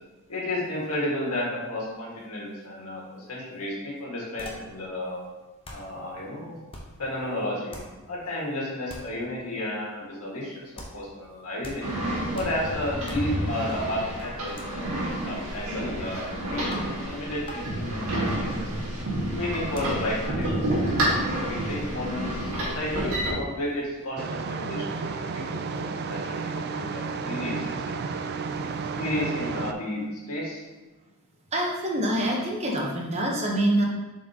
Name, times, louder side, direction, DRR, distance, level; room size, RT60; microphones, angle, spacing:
voice 1, 0.3-5.2 5.7-6.6 7.0-7.8 8.1-12.0 12.3-14.8 15.2-18.7 19.3-28.1 28.8-30.6, left 1 dB, 85° left, -4 dB, 1.8 m, -32 dB
sound 1, 4.4-4.9 5.2-5.3 5.6-6.0 6.7-7.1 7.7-8.1 8.9-9.2 10.8-11.1 11.6-12.0 12.3-12.7 13.0-13.4 14.6-14.7 16.7-17.1 17.5-17.7 18.3-18.5 19.7-20.1, left 1 dB, 25° left, 0.8 m, -42 dB
sound 2, 11.8-23.3, right 1 dB, 65° right, 1.8 m, -29 dB
sound 3, 24.2-29.7, right 4 dB, 45° right, 0.3 m, -32 dB
voice 2, 31.5-33.8, right 1 dB, 30° right, -1 dB, 0.9 m, -25 dB
7.2 x 4.5 x 2.9 m, 1.1 s
head